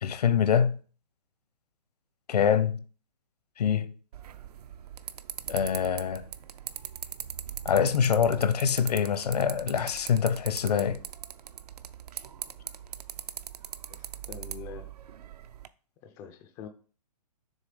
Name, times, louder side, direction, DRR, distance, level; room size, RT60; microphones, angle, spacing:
voice 1, 0.0-0.8 2.3-2.8 3.6-3.9 5.5-6.2 7.6-11.0, left 7 dB, 70° left, 0.8 m, -25 dB
sound 1, 4.1-15.7, right 9 dB, 70° right, 0.6 m, -41 dB
voice 2, 14.0-14.9 16.0-16.7, left 8 dB, 15° left, 0.3 m, -44 dB
6.7 x 3.6 x 5.0 m
hypercardioid pair, 145°, 21 cm